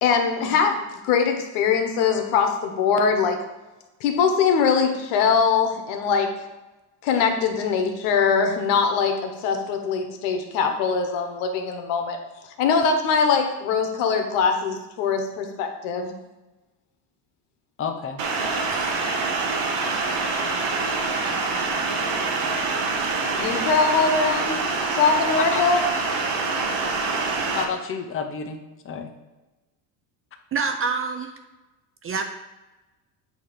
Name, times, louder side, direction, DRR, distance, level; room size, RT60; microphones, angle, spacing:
voice 1, 0.0-3.4 4.0-6.3 7.0-12.2 12.6-16.1 23.3-24.6 24.9-25.8, left 5 dB, 90° left, 5 dB, 1.0 m, -22 dB
voice 2, 17.8-18.2 25.4-26.0 27.5-29.1, left 6 dB, 25° left, 5 dB, 0.7 m, -31 dB
sound 1, 18.2-27.6, right 3 dB, 70° right, 1.1 m, -25 dB
voice 3, 30.5-31.3 32.0-32.2, right 5 dB, 30° right, 6 dB, 0.4 m, -26 dB
7.8 x 2.9 x 5.0 m, 1.1 s
cardioid pair, 120°, 49 cm